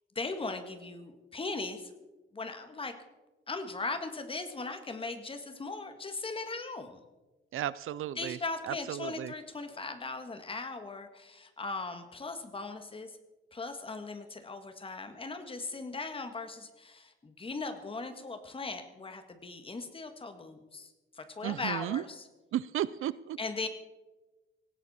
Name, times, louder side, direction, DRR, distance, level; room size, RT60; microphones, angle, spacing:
voice 1, 0.2-1.9 2.3-3.0 3.5-7.0 8.2-13.2 13.5-22.3 23.4-23.7, left 3 dB, 25° left, 7 dB, 1.7 m, -39 dB
voice 2, 7.5-8.4 8.7-9.3 21.4-22.0 22.5-23.4, right 12 dB, 85° right, 18 dB, 0.5 m, -34 dB
18.0 x 16.5 x 4.3 m, 1.1 s
wide cardioid pair, 150°, 21 cm